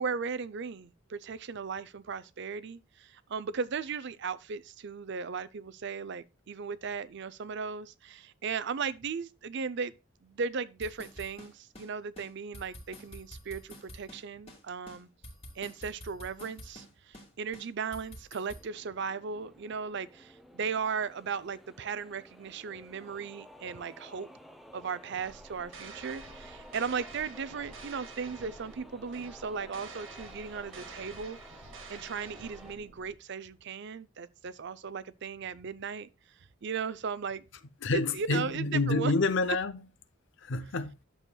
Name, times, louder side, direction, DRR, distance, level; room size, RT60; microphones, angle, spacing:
voice 1, 0.0-9.9 10.2-15.1 15.6-24.3 24.7-31.4 31.9-36.1 36.6-37.4 37.9-39.1, right 5 dB, 60° right, 0.5 m, -37 dB
sound 1, 10.8-11.9 12.2-12.3 12.5-14.2 14.5-14.6 14.9-16.9 17.1-17.3 17.5-18.6, equal, 30° left, 2.3 m, -48 dB
sound 2, 18.5-32.8, equal, ahead, 0.6 m, -53 dB
sound 3, 25.2-33.1, right 3 dB, 75° right, 1.8 m, -49 dB
voice 2, 37.8-39.8 40.4-40.9, left 3 dB, 60° left, 0.7 m, -28 dB
11.0 x 7.0 x 2.3 m
head